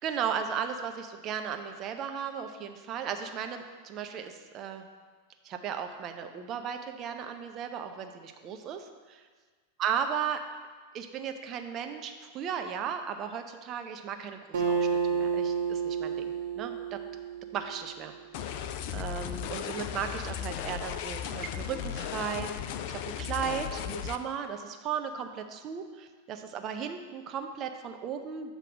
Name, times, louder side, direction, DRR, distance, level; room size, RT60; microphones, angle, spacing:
voice 1, 0.0-4.8 5.4-9.2 9.8-10.4 10.9-17.0 17.5-18.1 18.4-22.5 22.9-28.5, right 7 dB, 35° right, 6 dB, 0.6 m, -36 dB
Acoustic guitar, 14.5-18.1, right 6 dB, 60° right, 1.1 m, -30 dB
sound 1, 18.3-24.2, left 9 dB, 45° left, 0.3 m, -36 dB
7.5 x 3.3 x 6.2 m, 1.5 s
figure-of-eight pair, 90°, 0 cm